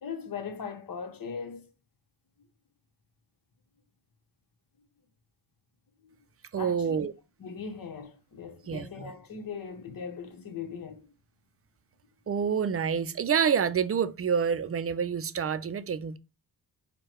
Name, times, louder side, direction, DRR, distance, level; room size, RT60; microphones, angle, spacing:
voice 1, 0.0-1.6 6.6-7.0 7.4-11.0, left 6 dB, 55° left, 1.0 m, -39 dB
voice 2, 6.5-7.1 8.7-9.1 12.3-16.2, right 7 dB, 35° right, 0.4 m, -28 dB
4.5 x 2.2 x 4.5 m
cardioid pair, 85°, 40 cm